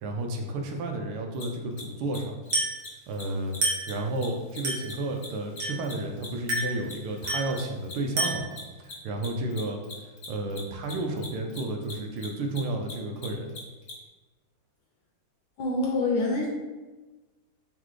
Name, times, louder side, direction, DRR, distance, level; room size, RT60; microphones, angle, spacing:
voice 1, 0.0-2.4 3.1-3.6 3.9-8.4 8.8-9.8 10.3-13.5, right 2 dB, 80° right, 3 dB, 1.5 m, -32 dB
Mechanisms, 1.3-1.4 1.7-2.2 2.4-2.5 2.8-2.9 3.1-3.2 3.5-3.6 3.9-6.6 6.8-13.9, left 4 dB, 55° left, 1.4 m, -42 dB
Glass, 2.5-2.9 3.6-4.0 4.6-5.0 5.6-5.9 6.5-6.8 7.3-7.6 8.2-8.6, right 2 dB, 55° right, 1.6 m, -29 dB
voice 2, 15.6-16.5, left 2 dB, 75° left, -2 dB, 1.3 m, -26 dB
4.0 x 3.7 x 3.1 m, 1.2 s
omnidirectional pair, 2.4 m